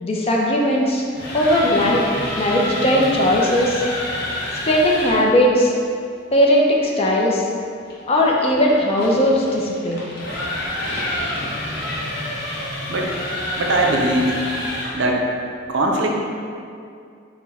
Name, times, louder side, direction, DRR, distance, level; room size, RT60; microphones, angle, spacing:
voice 1, 0.0-1.0 1.3-2.0 2.3-3.8 4.7-5.7 6.3-7.4 8.1-10.1, left 1 dB, 30° left, -2 dB, 0.4 m, -18 dB
sound 1, 1.0-5.3 7.9-15.1, left 1 dB, 55° left, 0.8 m, -28 dB
voice 2, 13.6-14.4 14.9-15.2 15.7-16.2, right 1 dB, 65° right, 0 dB, 0.5 m, -20 dB
4.5 x 2.1 x 4.1 m, 2.4 s
head